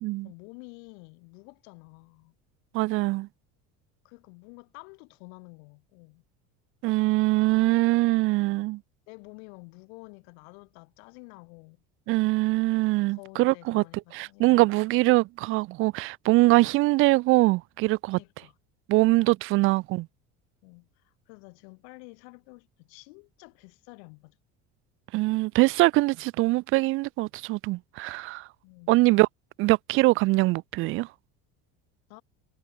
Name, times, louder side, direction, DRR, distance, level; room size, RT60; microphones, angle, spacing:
voice 1, 0.2-2.3 4.0-6.2 9.1-11.8 13.1-14.7 16.5-16.7 18.1-18.6 19.3-19.4 20.6-24.4 28.6-29.0 32.1-32.2, left 36 dB, 80° left, 5.4 m, -49 dB
voice 2, 2.7-3.3 6.8-8.8 12.1-13.8 14.1-18.2 18.9-20.1 25.1-28.5 28.9-29.3 29.6-31.1, right 21 dB, 40° right, 0.4 m, -23 dB
cardioid pair, 165°, 32 cm